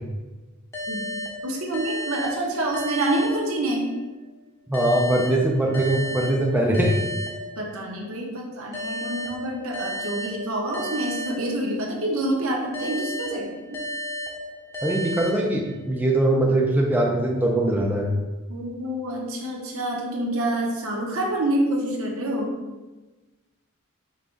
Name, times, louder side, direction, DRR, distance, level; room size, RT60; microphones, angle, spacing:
sound 1, 0.7-4.1 4.7-8.0 8.7-12.1 12.7-16.0, equal, 15° left, 0.8 m, -34 dB
voice 1, 1.4-3.8 7.6-13.5 18.5-22.5, right 1 dB, 65° right, -1 dB, 0.9 m, -27 dB
voice 2, 4.7-6.9 14.8-18.2, right 1 dB, 10° right, -1 dB, 0.4 m, -21 dB
5.5 x 2.3 x 3.8 m, 1.2 s
head